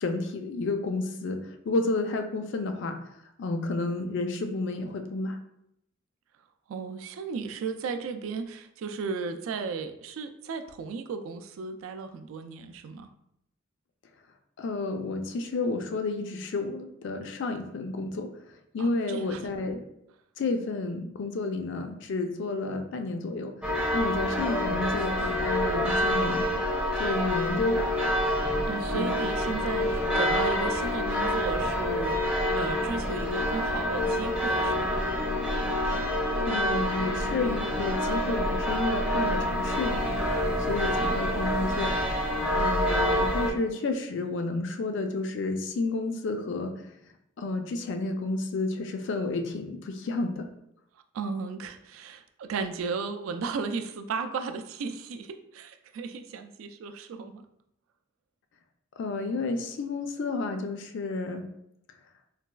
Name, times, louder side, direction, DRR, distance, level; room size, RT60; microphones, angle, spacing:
voice 1, 0.0-1.4 1.7-3.0 3.4-5.4 14.6-18.3 18.7-19.8 20.4-23.5 23.9-26.5 27.0-27.9 28.9-29.2 36.4-40.1 40.7-42.0 42.6-46.7 47.4-50.5 59.0-61.4, left 3 dB, 60° left, 6 dB, 0.4 m, -31 dB
voice 2, 6.7-13.1 18.8-19.4 28.7-32.3 32.5-35.0 51.1-57.4, right 5 dB, 80° right, 8 dB, 0.3 m, -35 dB
sound 1, 23.6-43.5, left 1 dB, 5° right, 0.4 m, -27 dB
4.0 x 2.3 x 2.2 m, 0.77 s
head